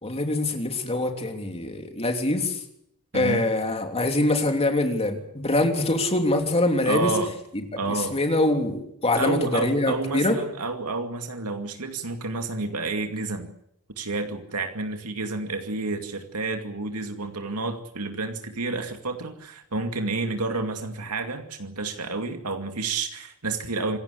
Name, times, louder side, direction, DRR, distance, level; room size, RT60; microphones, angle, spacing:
voice 1, 0.0-2.6 3.1-7.1 7.5-10.4, left 2 dB, 25° left, 4 dB, 3.3 m, -24 dB
voice 2, 3.1-3.4 6.9-7.3 7.8-8.2 9.2-13.5 14.0-24.0, right 3 dB, 85° right, 5 dB, 2.4 m, -30 dB
27.0 x 16.0 x 8.3 m, 0.74 s
head